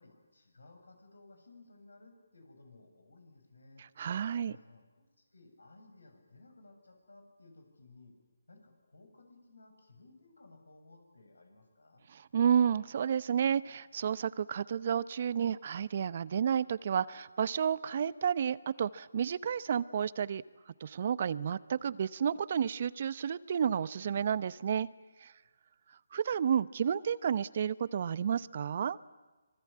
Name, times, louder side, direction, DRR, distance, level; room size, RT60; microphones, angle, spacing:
voice 1, 0.0-3.8 4.4-8.1 8.5-12.0 25.4-25.5, left 2 dB, 85° left, 5 dB, 7.6 m, -58 dB
voice 2, 4.0-4.6 12.1-20.4 20.8-24.9 25.2-25.3 26.1-29.0, right 8 dB, 45° right, 18 dB, 0.8 m, -31 dB
26.0 x 23.0 x 8.7 m, 1.3 s
figure-of-eight pair, 150°, 0 cm